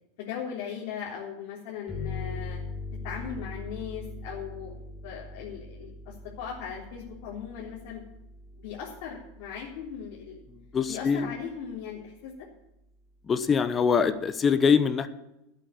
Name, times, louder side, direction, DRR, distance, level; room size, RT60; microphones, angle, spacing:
voice 1, 0.2-2.6 3.0-4.8 5.0-8.0 8.5-10.4 10.9-12.5, left 7 dB, 60° left, -4 dB, 3.6 m, -38 dB
sound 1, 1.9-11.2, left 3 dB, 10° left, 3.6 m, -41 dB
voice 2, 10.7-11.3 13.3-15.1, left 6 dB, 25° left, 11 dB, 1.2 m, -23 dB
12.5 x 8.3 x 8.3 m, 0.89 s
supercardioid pair, 115°, 0 cm